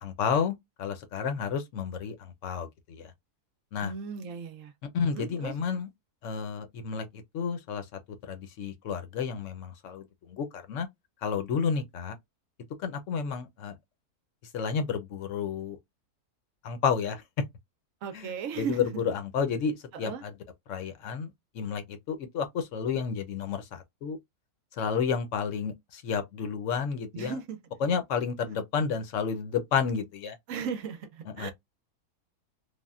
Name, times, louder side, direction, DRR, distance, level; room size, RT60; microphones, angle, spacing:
voice 1, 0.0-3.1 3.7-3.9 4.8-5.9 6.2-10.9 11.2-12.2 12.8-13.8 14.5-15.8 16.6-17.2 18.1-20.3 20.7-24.2 24.7-27.4 27.8-30.4 31.3-31.5, left 6 dB, 60° left, 0.9 m, -31 dB
voice 2, 3.8-4.7 5.1-5.5 18.0-19.0 20.0-20.2 27.1-27.6 30.5-31.5, right 6 dB, 65° right, 0.8 m, -36 dB
3.4 x 2.2 x 2.3 m
omnidirectional pair, 1.7 m